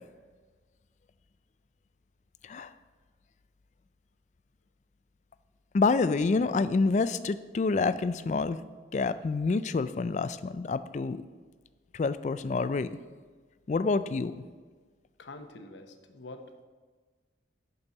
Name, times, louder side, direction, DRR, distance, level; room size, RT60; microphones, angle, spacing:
voice 1, 5.7-8.6 8.9-11.2 11.9-12.9 13.7-14.4, left 4 dB, 40° left, 14 dB, 0.3 m, -27 dB
voice 2, 15.2-16.6, left 2 dB, 75° left, 7 dB, 0.8 m, -46 dB
6.7 x 5.4 x 7.1 m, 1.5 s
head